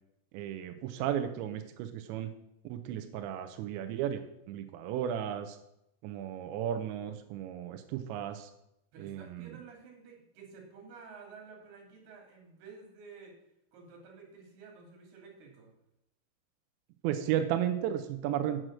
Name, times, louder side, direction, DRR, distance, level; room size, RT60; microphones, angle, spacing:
voice 1, 0.3-2.3 2.7-4.2 4.5-5.6 6.0-8.5 9.0-9.6 17.0-18.6, right 10 dB, 85° right, 6 dB, 2.5 m, -34 dB
voice 2, 8.9-13.3 13.7-15.7, right 5 dB, 55° right, 0 dB, 4.1 m, -51 dB
7.8 x 7.6 x 6.3 m, 0.81 s
omnidirectional pair, 6.0 m